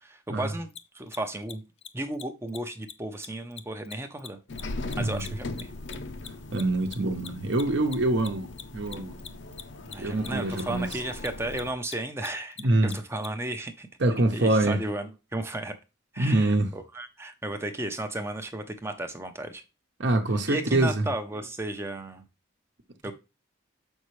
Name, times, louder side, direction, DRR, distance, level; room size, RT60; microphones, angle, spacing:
voice 1, 0.0-0.7 0.9-1.6 1.9-4.4 5.0-5.7 9.9-13.9 14.3-15.7 16.1-19.6 20.5-22.2 23.0-23.1, right 1 dB, 10° right, 0.6 m, -34 dB
Mechanisms, 0.7-0.8 1.1-1.2 1.4-1.5 1.8-2.2 2.5-2.6 2.8-2.9 3.2-5.9 6.2-13.3, left 8 dB, 30° left, 0.4 m, -41 dB
sound 1, 4.5-11.7, left 2 dB, 60° left, 0.7 m, -39 dB
voice 2, 6.5-9.2 10.0-10.9 12.6-12.9 14.0-14.8 16.2-16.7 20.0-21.1, right 2 dB, 60° right, 0.9 m, -25 dB
7.0 x 5.4 x 3.1 m
head